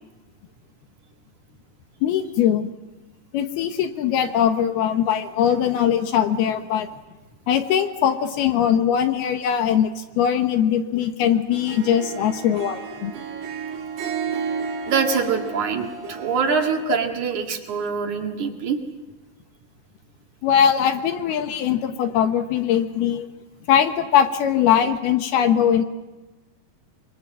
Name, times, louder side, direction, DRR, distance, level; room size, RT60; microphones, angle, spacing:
voice 1, 2.0-2.7 3.3-6.9 7.5-13.1 20.4-23.3 23.7-25.8, left 9 dB, 70° left, 8 dB, 2.9 m, -21 dB
Harp, 11.5-16.8, right 6 dB, 85° right, 4.5 m, -32 dB
voice 2, 14.9-18.8, right 5 dB, 50° right, 3 dB, 2.8 m, -24 dB
25.5 x 24.0 x 7.5 m, 1.1 s
omnidirectional pair, 5.1 m